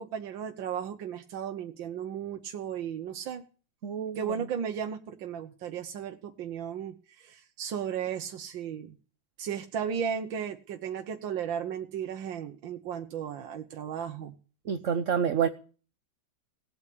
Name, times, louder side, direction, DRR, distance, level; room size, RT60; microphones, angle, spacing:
voice 1, 0.0-3.4 4.2-9.0 9.4-14.3, right 8 dB, 85° right, 6 dB, 1.8 m, -35 dB
voice 2, 3.8-4.5 14.6-15.5, right 7 dB, 50° right, 10 dB, 1.0 m, -28 dB
18.5 x 8.5 x 8.5 m, 0.38 s
omnidirectional pair, 2.0 m